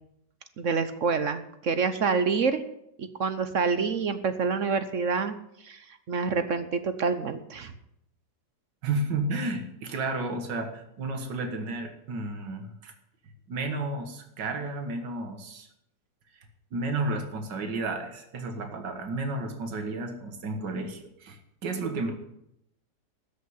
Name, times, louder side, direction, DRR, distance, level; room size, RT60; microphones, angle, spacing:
voice 1, 0.6-2.6 3.0-7.7, right 5 dB, 55° right, 10 dB, 1.1 m, -27 dB
voice 2, 8.8-12.9 13.5-15.7 16.7-22.1, right 2 dB, 80° right, 5 dB, 2.3 m, -32 dB
13.5 x 6.5 x 9.7 m, 0.78 s
omnidirectional pair, 1.9 m